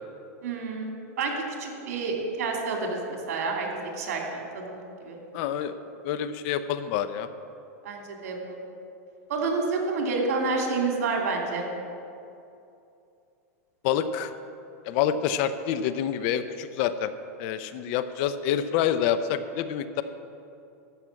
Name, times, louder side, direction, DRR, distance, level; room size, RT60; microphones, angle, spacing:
voice 1, 0.4-1.3 1.6-5.2 7.8-8.6 9.3-11.7, right 4 dB, 70° right, 1 dB, 2.8 m, -29 dB
voice 2, 5.3-7.3 13.8-14.3 14.9-17.1 17.4-20.0, left 9 dB, 50° left, 12 dB, 0.6 m, -27 dB
13.5 x 6.1 x 8.1 m, 2.7 s
supercardioid pair, 140°, 8 cm